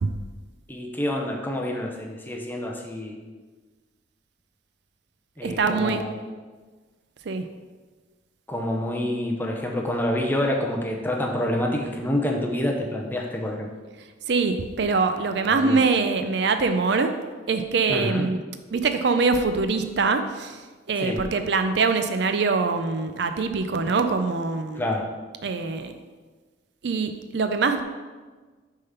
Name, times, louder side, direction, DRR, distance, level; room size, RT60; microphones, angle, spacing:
voice 1, 0.7-3.2 5.4-6.2 8.5-13.7 15.5-15.8 17.9-18.2 21.0-21.2 24.7-25.1, left 1 dB, 10° left, 1 dB, 0.6 m, -27 dB
voice 2, 5.4-6.0 7.3-7.4 14.3-17.1 17.5-18.4 18.7-20.6 20.9-24.8 25.4-26.0 26.8-27.8, right 4 dB, 60° right, 8 dB, 0.4 m, -23 dB
6.5 x 3.7 x 5.7 m, 1.4 s
head